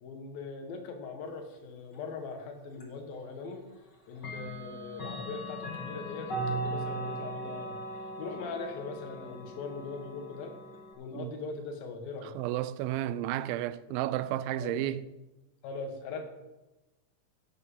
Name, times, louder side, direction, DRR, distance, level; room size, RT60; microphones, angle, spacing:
voice 1, 0.0-3.6 4.1-7.8 8.2-10.5 11.0-12.3 14.6-14.9 15.6-16.2, left 4 dB, 80° left, 3.3 m, -40 dB
Clock, 2.8-2.9 4.2-10.9, right 1 dB, 35° left, 2.0 m, -38 dB
voice 2, 12.4-15.1, right 13 dB, 90° right, 2.4 m, -32 dB
11.0 x 6.7 x 7.3 m
omnidirectional pair, 4.1 m